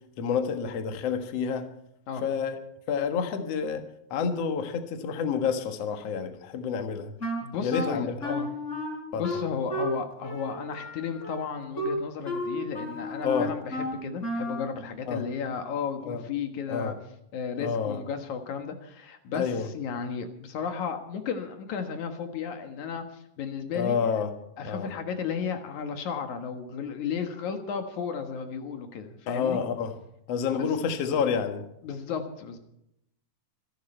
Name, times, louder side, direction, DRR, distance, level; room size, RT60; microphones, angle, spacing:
voice 1, 0.2-1.7 2.2-2.6 2.9-3.8 4.1-7.1 7.6-8.2 9.1-9.3 13.2-13.5 15.1-15.2 16.0-16.2 16.7-17.0 17.6-18.0 19.3-19.7 23.7-24.3 24.6-24.9 29.3-29.9 30.3-31.6, left 6 dB, 60° left, 6 dB, 2.4 m, -28 dB
Wind instrument woodwind instrument, 7.2-14.8, left 1 dB, 25° left, 4.6 m, -33 dB
voice 2, 7.4-8.5 9.1-16.9 17.3-24.0 24.6-29.6 30.6-30.7 31.8-32.6, left 6 dB, 75° left, 6 dB, 2.8 m, -34 dB
25.5 x 11.5 x 4.4 m, 0.76 s
omnidirectional pair, 3.5 m